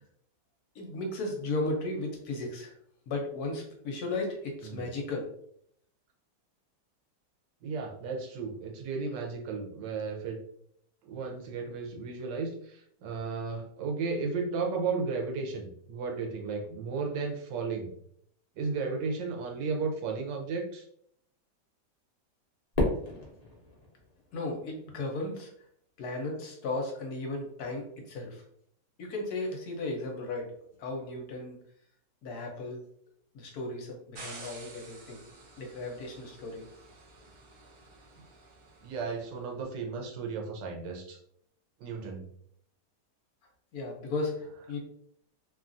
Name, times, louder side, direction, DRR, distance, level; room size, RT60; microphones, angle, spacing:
voice 1, 0.7-2.8 3.1-5.3 24.3-25.5 26.0-28.4 29.0-30.5 30.8-31.6 32.2-32.8 33.3-35.2 35.6-36.6 43.7-44.8, left 2 dB, 65° left, 1 dB, 1.1 m, -35 dB
voice 2, 7.6-10.4 11.1-17.9 18.6-20.8 38.8-41.2 41.8-42.2, right 4 dB, 85° right, 2 dB, 1.3 m, -34 dB
Fireworks, 22.7-25.1, left 2 dB, 85° left, 0.3 m, -33 dB
sound 1, 34.1-39.3, right 3 dB, 65° right, 0.6 m, -50 dB
3.0 x 2.3 x 2.5 m, 0.68 s
omnidirectional pair, 1.9 m